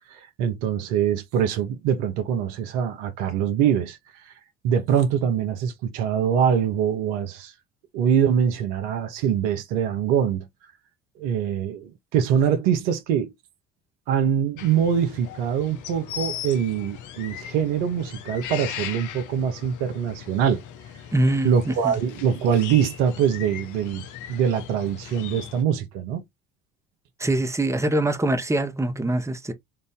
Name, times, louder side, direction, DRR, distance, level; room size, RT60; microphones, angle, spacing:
voice 1, 0.1-4.0 4.6-7.5 7.9-10.5 11.2-13.3 14.1-20.6 21.4-26.2, right 8 dB, 75° right, 1.1 m, -23 dB
sound 1, 14.6-25.6, left 10 dB, 55° left, 0.9 m, -38 dB
voice 2, 21.1-21.9 27.2-29.5, right 1 dB, 10° right, 1.1 m, -23 dB
4.4 x 2.7 x 3.6 m
hypercardioid pair, 60°, 36 cm